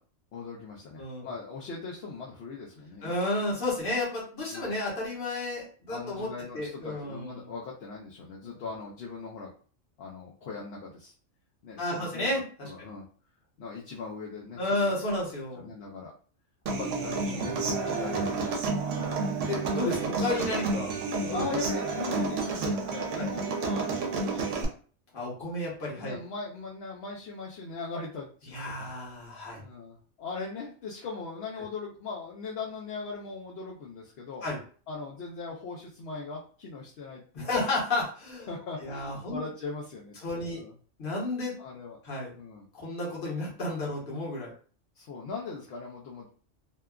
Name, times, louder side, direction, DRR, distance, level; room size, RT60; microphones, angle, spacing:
voice 1, 0.3-3.1 4.5-4.7 5.9-9.5 10.0-11.1 11.6-12.3 12.6-13.1 13.6-14.9 15.6-16.1 16.7-19.3 21.3-24.5 26.0-28.9 29.6-34.4 34.9-37.8 38.5-40.7 41.6-42.0 42.4-42.7 45.0-46.3, left 4 dB, 65° left, -3 dB, 0.8 m, -40 dB
voice 2, 1.0-1.3 3.0-6.3 6.5-7.5 8.4-8.6 11.8-12.9 14.6-15.7 17.3-17.7 19.0-20.9 21.2-21.4 23.2-23.3 25.1-26.2 28.5-29.6 34.4-34.6 37.3-38.5 38.8-39.4 40.2-40.6 41.0-41.6 42.0-42.3 42.7-44.5, left 2 dB, 45° left, -4 dB, 1.2 m, -32 dB
Human voice / Acoustic guitar, 16.7-24.6, right 4 dB, 75° right, 0.9 m, -30 dB
2.8 x 2.3 x 2.3 m, 0.41 s
omnidirectional pair, 1.3 m